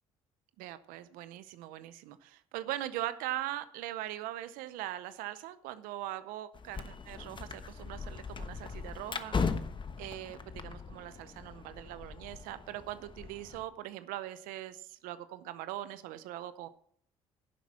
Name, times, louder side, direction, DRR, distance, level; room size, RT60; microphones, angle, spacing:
voice 1, 0.6-9.4 10.0-16.7, right 14 dB, 85° right, 13 dB, 0.6 m, -41 dB
sound 1, 6.5-13.7, left 5 dB, 35° left, 1.1 m, -39 dB
10.5 x 7.4 x 5.8 m, 0.65 s
supercardioid pair, 60°, 14 cm